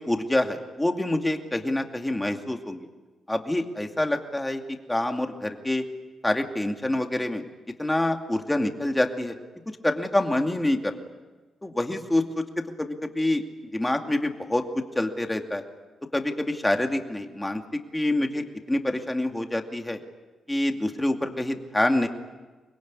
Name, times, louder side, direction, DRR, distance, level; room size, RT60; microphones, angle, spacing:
voice 1, 0.0-2.8 3.3-4.6 4.9-5.8 6.2-7.4 7.8-9.4 9.8-10.9 11.6-12.4 12.8-13.4 13.7-14.6 14.9-15.6 16.1-20.0 20.5-22.1, left 1 dB, 10° left, 4 dB, 2.5 m, -26 dB
25.0 x 21.0 x 9.7 m, 1.3 s
cardioid pair, 100°, 0 cm